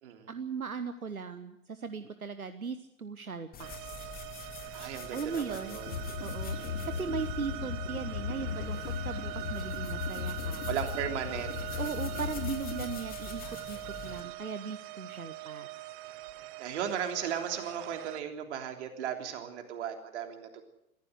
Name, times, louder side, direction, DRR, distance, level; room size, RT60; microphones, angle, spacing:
voice 1, 0.3-4.0 5.1-5.8 6.2-10.7 11.8-15.7, right 5 dB, 85° right, 11 dB, 1.1 m, -38 dB
sound 1, 3.5-14.2, left 6 dB, 20° left, 2.6 m, -47 dB
sound 2, 3.6-18.2, right 19 dB, 35° right, 0.9 m, -42 dB
voice 2, 4.7-6.0 6.6-6.8 10.7-11.8 16.6-20.6, right 8 dB, 55° right, 5 dB, 3.5 m, -36 dB
sound 3, 5.9-12.9, left 7 dB, 55° left, 3.1 m, -37 dB
22.0 x 15.0 x 8.1 m, 0.84 s
figure-of-eight pair, 100°, 42 cm